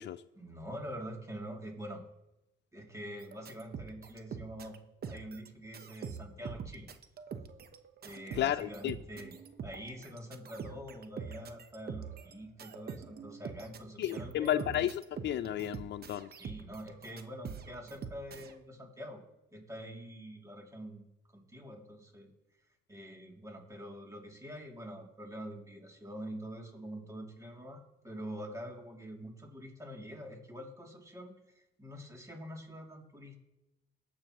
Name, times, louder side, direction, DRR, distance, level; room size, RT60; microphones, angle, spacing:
voice 1, 0.3-2.0 2.7-4.8 5.1-6.9 8.0-9.3 9.6-14.9 16.4-19.2 19.5-21.0 21.3-22.3 22.9-27.8 28.0-31.3 31.8-33.4, equal, 15° right, 0 dB, 2.5 m, -45 dB
sound 1, 3.2-4.8 5.0-5.5 5.7-18.6, right 6 dB, 50° right, 0.9 m, -44 dB
voice 2, 8.4-8.9 14.0-16.3, left 11 dB, 65° left, 15 dB, 0.4 m, -32 dB
20.5 x 7.1 x 2.9 m, 0.94 s
cardioid pair, 90°, 20 cm